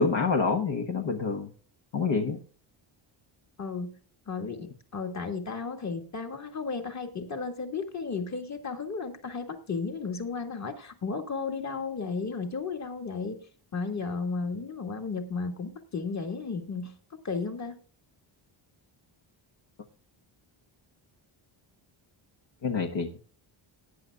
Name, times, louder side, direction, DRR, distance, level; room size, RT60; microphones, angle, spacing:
voice 1, 0.0-1.5 1.9-2.4 22.6-23.2, left 4 dB, 60° left, 4 dB, 1.2 m, -27 dB
voice 2, 3.6-4.0 4.3-13.4 13.7-16.9 17.2-17.8, left 4 dB, 35° left, 5 dB, 1.8 m, -34 dB
18.0 x 9.4 x 2.3 m, 0.41 s
wide cardioid pair, 140°, 50 cm